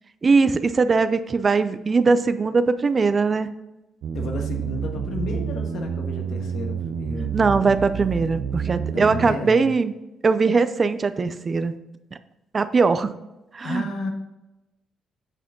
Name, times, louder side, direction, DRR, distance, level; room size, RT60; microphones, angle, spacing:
voice 1, 0.2-3.5 7.3-9.9 10.2-11.7 12.5-13.1 13.5-13.9, right 4 dB, 35° right, 11 dB, 0.5 m, -20 dB
sound 1, 4.0-9.3, right 7 dB, 75° right, 0.6 m, -29 dB
voice 2, 4.1-7.5 8.9-9.7 13.6-14.1, left 2 dB, 75° left, 3 dB, 1.4 m, -32 dB
8.9 x 4.8 x 3.8 m, 0.96 s
cardioid pair, 90°, 0 cm